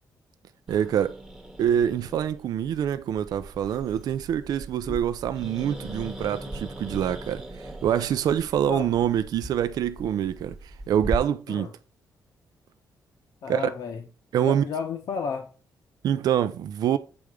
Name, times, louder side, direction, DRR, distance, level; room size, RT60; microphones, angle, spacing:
Growling, 0.7-11.2, right 1 dB, 5° right, 1.0 m, -39 dB
voice 1, 0.7-1.2 1.6-11.7 13.5-13.7 14.3-14.6 16.0-17.0, right 10 dB, 65° right, 0.4 m, -25 dB
voice 2, 13.4-14.0 14.4-15.5, left 6 dB, 65° left, 0.9 m, -32 dB
7.8 x 3.5 x 4.9 m
wide cardioid pair, 160°, 7 cm